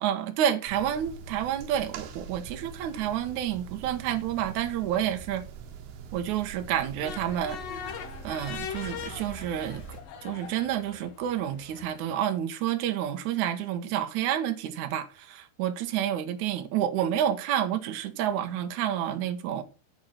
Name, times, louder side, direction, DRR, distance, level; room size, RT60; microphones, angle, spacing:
voice 1, 0.0-5.4 6.1-7.6 8.2-9.8 10.2-19.6, right 10 dB, 65° right, 2.1 m, -29 dB
sound 1, 0.7-10.0, right 6 dB, 80° right, 3.2 m, -43 dB
sound 2, 7.0-12.1, left 8 dB, 70° left, 1.6 m, -41 dB
9.0 x 7.3 x 5.9 m
omnidirectional pair, 4.6 m